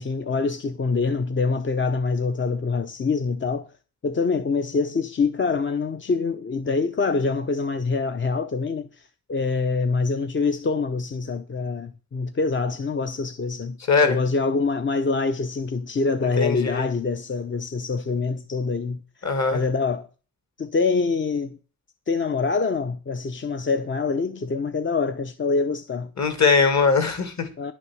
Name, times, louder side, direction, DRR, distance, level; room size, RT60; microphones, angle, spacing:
voice 1, 0.0-3.7 4.0-20.1 20.6-21.6 22.1-26.1 27.6-27.7, left 4 dB, 35° left, 0.7 m, -25 dB
voice 2, 16.4-16.9 19.2-19.6 26.2-27.5, left 4 dB, 50° left, 2.5 m, -20 dB
11.0 x 6.1 x 7.8 m
wide cardioid pair, 165°, 36 cm